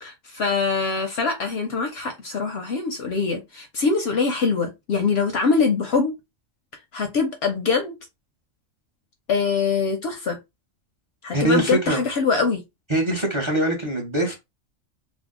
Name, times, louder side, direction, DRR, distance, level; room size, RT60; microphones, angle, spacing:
voice 1, 0.0-6.1 6.9-8.0 9.3-10.4 11.2-12.6, left 4 dB, 65° left, 0.7 m, -23 dB
voice 2, 11.3-12.0 12.9-14.3, right 1 dB, 30° right, 0.6 m, -22 dB
2.6 x 2.1 x 3.5 m
omnidirectional pair, 1.4 m